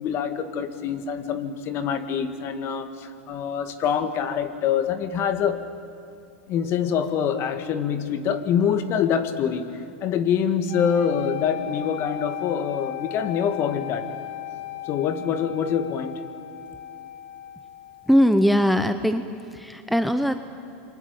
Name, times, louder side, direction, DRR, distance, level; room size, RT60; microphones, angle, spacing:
voice 1, 0.0-5.6 6.5-14.1 14.9-16.2, left 7 dB, 40° left, 9 dB, 2.0 m, -25 dB
sound 1, 10.7-18.8, left 12 dB, 65° left, 1.7 m, -37 dB
voice 2, 18.1-19.2 19.5-20.4, equal, ahead, 9 dB, 0.9 m, -20 dB
27.0 x 23.5 x 9.1 m, 2.6 s
supercardioid pair, 125°, 7 cm